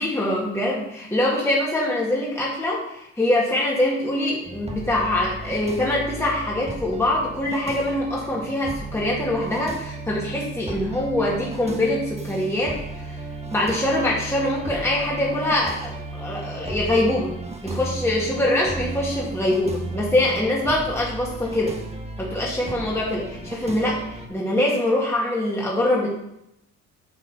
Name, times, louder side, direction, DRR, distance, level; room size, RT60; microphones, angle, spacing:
voice 1, 0.0-13.2 13.5-17.3 17.6-21.8 22.2-24.0 24.3-26.1, left 1 dB, 10° left, -5 dB, 1.9 m, -24 dB
sound 1, 4.4-24.3, right 2 dB, 20° right, 1.2 m, -35 dB
8.0 x 4.1 x 5.6 m, 0.80 s
cardioid pair, 90°, 30 cm